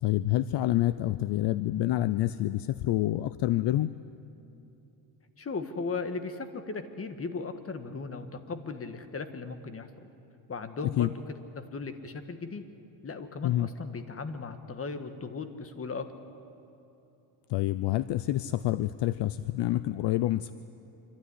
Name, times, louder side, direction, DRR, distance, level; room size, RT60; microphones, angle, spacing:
voice 1, 0.0-3.9 11.0-11.1 13.4-13.7 17.5-20.5, left 14 dB, 60° left, 15 dB, 0.6 m, -27 dB
voice 2, 5.4-9.9 10.5-12.6 13.0-16.1, left 4 dB, 30° left, 9 dB, 1.7 m, -37 dB
26.0 x 13.0 x 9.9 m, 2.9 s
cardioid pair, 95°, 47 cm